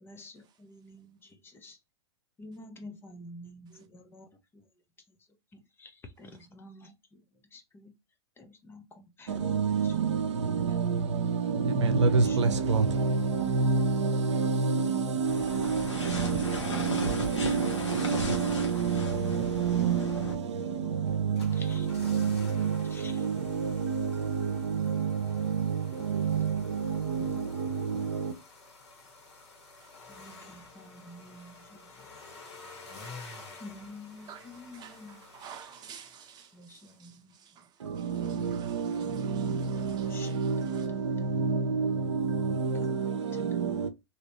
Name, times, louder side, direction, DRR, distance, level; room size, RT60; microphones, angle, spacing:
voice 1, 0.0-1.8 2.4-4.7 5.5-7.2 7.5-7.9 8.4-9.6 9.8-10.0 12.2-12.4 21.5-21.9 22.9-23.2 30.1-32.0 33.5-35.1 36.5-37.4 39.5-40.4 42.5-42.6 43.3-43.5, left 2 dB, 15° left, 0.6 m, -49 dB
voice 2, 9.3-28.3 37.8-43.9, right 5 dB, 80° right, 0.6 m, -28 dB
sound 1, 15.2-20.4, left 2 dB, 90° left, 1.0 m, -36 dB
sound 2, 21.1-36.6 36.8-36.9, left 3 dB, 65° left, 1.5 m, -51 dB
voice 3, 29.8-31.6 33.1-33.5 34.2-40.9, right 8 dB, 30° right, 0.9 m, -52 dB
3.0 x 2.8 x 2.9 m
hypercardioid pair, 110°, 15 cm